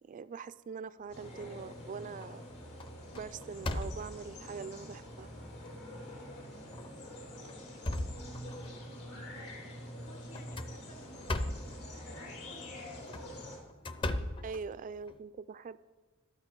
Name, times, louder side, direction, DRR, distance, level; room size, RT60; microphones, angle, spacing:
voice 1, 0.0-2.5 3.1-5.3 14.4-15.8, right 5 dB, 35° right, 15 dB, 0.3 m, -43 dB
sound 1, 1.1-13.6, left 1 dB, 80° left, 4.2 m, -46 dB
sound 2, 1.2-1.8 2.2-2.5 2.8-4.4 5.1-5.2 5.6-5.7 6.6-6.9 7.3-8.8 10.3-11.8 12.9-15.2, left 1 dB, 25° left, 0.6 m, -38 dB
voice 2, 6.3-9.7 10.0-13.2 14.4-14.5, left 1 dB, 60° left, 1 dB, 2.8 m, -56 dB
13.0 x 12.5 x 4.5 m, 1.3 s
head